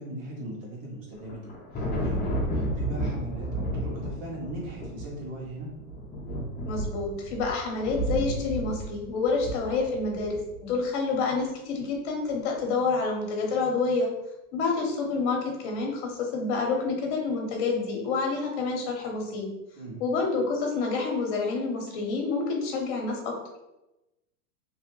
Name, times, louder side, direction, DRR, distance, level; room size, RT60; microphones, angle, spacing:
voice 1, 0.0-2.2 2.5-5.7 19.8-20.0, right 1 dB, 60° right, -2 dB, 1.4 m, -39 dB
Thunder, 1.1-10.6, right 1 dB, 20° left, 0.8 m, -32 dB
voice 2, 6.7-14.1 14.5-19.5 20.0-23.3, left 4 dB, 50° left, 1 dB, 1.0 m, -28 dB
3.0 x 2.1 x 3.1 m, 0.96 s
hypercardioid pair, 120°, 45 cm